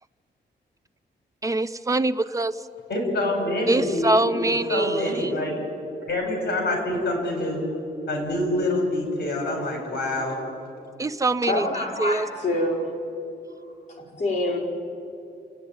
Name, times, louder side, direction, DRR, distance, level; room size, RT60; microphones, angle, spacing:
voice 1, 1.4-2.5 3.7-5.4 11.0-11.7 12.0-12.3, right 2 dB, 20° right, 11 dB, 0.6 m, -24 dB
voice 2, 2.9-5.5 6.0-7.6 8.1-10.4, left 1 dB, 60° left, 2 dB, 5.2 m, -26 dB
voice 3, 11.4-12.9 13.9-14.6, left 1 dB, 40° left, -4 dB, 4.6 m, -26 dB
29.0 x 9.9 x 9.2 m, 2.8 s
wide cardioid pair, 150°, 18 cm